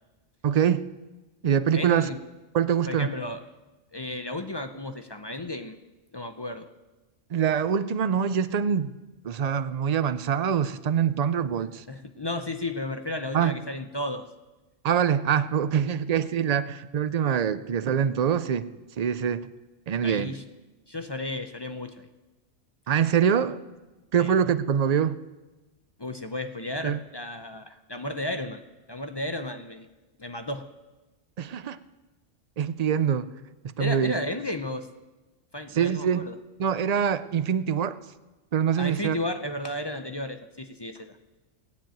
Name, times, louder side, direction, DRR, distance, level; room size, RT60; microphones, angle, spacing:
voice 1, 0.4-0.9 1.4-2.1 2.5-3.1 7.3-8.9 9.2-11.8 13.3-13.5 14.8-18.7 19.0-19.5 19.9-20.4 22.9-23.6 24.1-25.2 26.8-27.0 31.4-31.8 32.6-33.3 33.6-34.2 35.7-36.3 36.6-38.0 38.5-39.2, right 8 dB, 55° right, 14 dB, 0.4 m, -24 dB
voice 2, 1.7-2.2 2.9-3.4 3.9-5.8 6.1-6.7 11.9-14.3 20.0-20.4 20.9-22.1 24.2-24.3 26.0-28.6 28.9-29.9 30.2-30.7 33.8-34.9 35.5-36.3 38.8-41.2, left 1 dB, 30° left, 8 dB, 0.5 m, -33 dB
17.5 x 7.4 x 9.0 m, 1.1 s
omnidirectional pair, 1.3 m